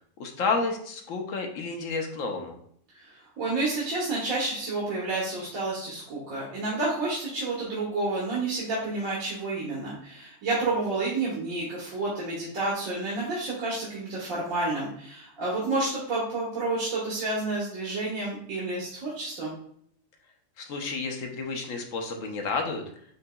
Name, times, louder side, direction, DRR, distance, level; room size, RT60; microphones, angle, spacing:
voice 1, 0.2-2.6 20.6-22.8, left 4 dB, 75° left, 3 dB, 1.2 m, -30 dB
voice 2, 2.9-19.5, right 2 dB, 80° right, -7 dB, 1.7 m, -30 dB
8.0 x 2.9 x 2.3 m, 0.66 s
omnidirectional pair, 1.4 m